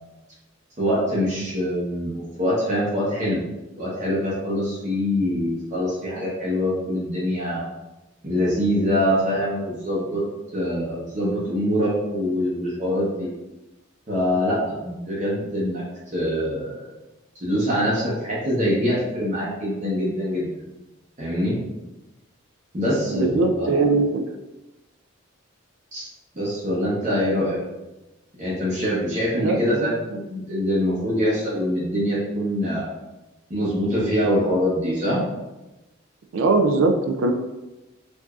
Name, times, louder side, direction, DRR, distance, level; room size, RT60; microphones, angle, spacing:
voice 1, 0.8-3.4 3.8-7.6 8.2-10.2 10.5-13.3 14.1-15.8 16.1-16.9 17.4-20.6 21.2-21.6 22.7-23.9 25.9-26.1 26.3-27.6 28.4-32.8 33.5-35.2, equal, 35° right, -7 dB, 0.8 m, -24 dB
voice 2, 23.1-24.2 29.3-29.9 36.3-37.3, right 3 dB, 80° right, 5 dB, 0.4 m, -21 dB
4.7 x 2.6 x 2.3 m, 1.0 s
head